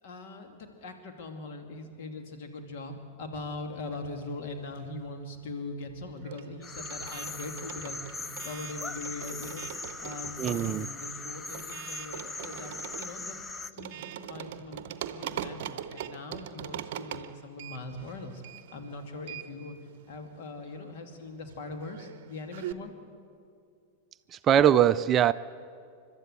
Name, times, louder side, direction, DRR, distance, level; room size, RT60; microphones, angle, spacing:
voice 1, 0.0-9.7 10.0-13.4 13.7-14.8 15.1-18.4 18.7-19.8 20.1-22.9, left 2 dB, 50° left, 4 dB, 2.6 m, -41 dB
sound 1, 3.9-5.2 5.4-22.7, right 11 dB, 50° right, 0.8 m, -43 dB
sound 2, 6.6-13.7, left 2 dB, 15° left, 0.7 m, -40 dB
voice 2, 10.4-10.9 24.3-25.3, right 10 dB, 30° right, 15 dB, 0.4 m, -22 dB
30.0 x 12.5 x 8.1 m, 2.3 s
figure-of-eight pair, 90°, 0 cm